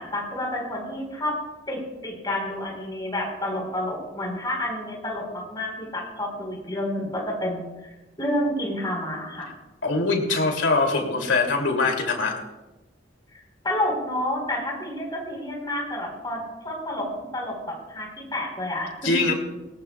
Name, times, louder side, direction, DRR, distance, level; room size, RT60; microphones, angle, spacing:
voice 1, 0.0-1.3 1.7-7.7 8.2-9.5 13.3-16.4 16.6-17.1 17.3-19.1, left 1 dB, 20° left, -1 dB, 4.3 m, -29 dB
voice 2, 9.8-12.3 19.0-19.3, left 3 dB, 85° left, 2 dB, 2.8 m, -22 dB
19.5 x 18.5 x 2.3 m, 1.1 s
head